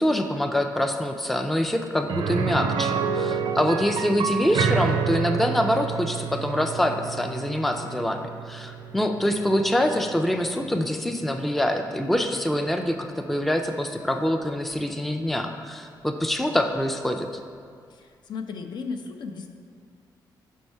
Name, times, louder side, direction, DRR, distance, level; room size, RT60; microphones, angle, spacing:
voice 1, 0.0-17.3, left 1 dB, ahead, 5 dB, 0.3 m, -25 dB
sound 1, 2.1-11.9 12.2-12.3 14.7-14.8, right 6 dB, 75° right, 0.4 m, -29 dB
voice 2, 17.9-19.5, left 5 dB, 70° left, 5 dB, 0.5 m, -35 dB
5.4 x 5.3 x 4.5 m, 2.2 s
wide cardioid pair, 130°, 8 cm